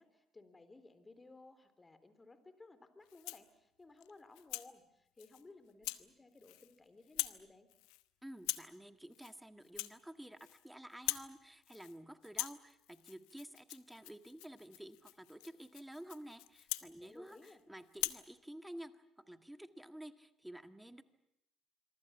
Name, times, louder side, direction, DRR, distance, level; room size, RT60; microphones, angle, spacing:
voice 1, 0.0-7.7 16.8-17.6, left 3 dB, 25° left, 11 dB, 3.7 m, -59 dB
Rattle (instrument), 3.1-3.5 4.0-4.7 5.2-5.4 5.8-6.1 6.4-6.8 7.0-7.4 7.7-8.0 8.4-8.8 9.1-9.4 9.6-10.6 10.9-11.3 11.6-12.0 12.2-17.6 17.9-18.3, left 20 dB, 80° left, 0.9 m, -43 dB
voice 2, 8.2-21.0, right 1 dB, 5° right, 9 dB, 1.8 m, -51 dB
26.5 x 23.5 x 7.2 m, 0.81 s
supercardioid pair, 65°, 0 cm